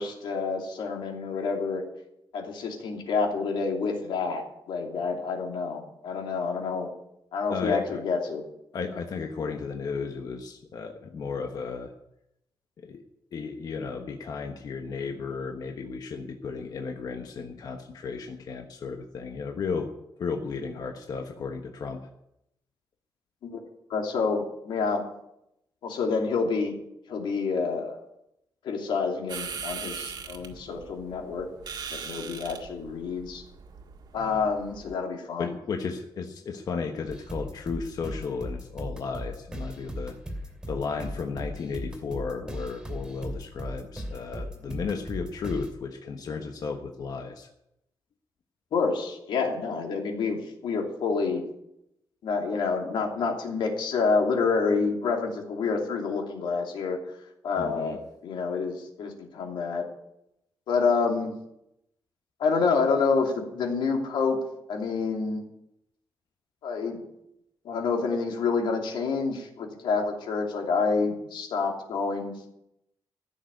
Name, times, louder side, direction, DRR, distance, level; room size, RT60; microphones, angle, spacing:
voice 1, 0.0-1.8 2.3-6.9 7.3-8.4 23.4-23.6 23.9-25.0 25.8-26.7 27.1-28.0 28.6-31.5 31.9-33.4 34.1-35.5 48.7-51.4 52.2-57.0 57.4-59.8 60.7-61.3 62.4-64.4 64.7-65.4 66.6-67.0 67.6-72.5, left 4 dB, 90° left, 2 dB, 2.8 m, -28 dB
voice 2, 7.5-8.0 8.7-11.9 12.8-13.0 13.3-19.9 20.2-22.1 34.2-34.5 35.4-40.2 40.7-47.5 57.6-58.0, left 5 dB, 50° left, 4 dB, 1.2 m, -34 dB
sound 1, 29.3-34.9, right 6 dB, 65° right, 1.9 m, -40 dB
sound 2, 37.1-45.7, equal, 10° right, 2.7 m, -37 dB
15.5 x 6.6 x 9.7 m, 0.83 s
wide cardioid pair, 150°, 8 cm